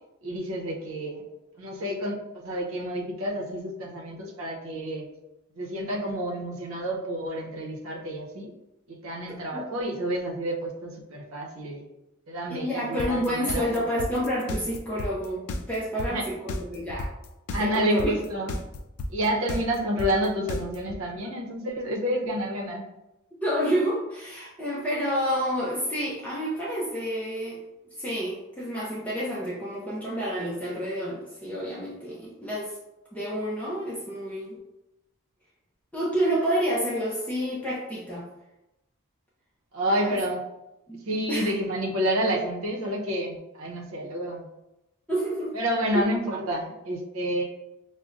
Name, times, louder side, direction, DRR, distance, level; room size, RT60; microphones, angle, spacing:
voice 1, 0.2-1.2 1.6-5.1 5.6-8.5 8.9-11.8 12.3-13.7 16.1-16.2 17.5-18.5 19.1-22.8 39.7-40.4 41.1-44.5 45.5-47.4, equal, 70° right, -2 dB, 0.7 m, -29 dB
voice 2, 12.5-17.1 17.6-18.1 23.4-27.6 27.8-32.8 33.1-34.6 35.9-38.3 40.0-40.2 40.9-41.5 45.1-45.6 45.9-46.1, equal, 5° left, -7 dB, 0.5 m, -29 dB
sound 1, 13.0-21.0, left 1 dB, 85° left, 0.4 m, -32 dB
5.2 x 2.1 x 2.4 m, 0.94 s
head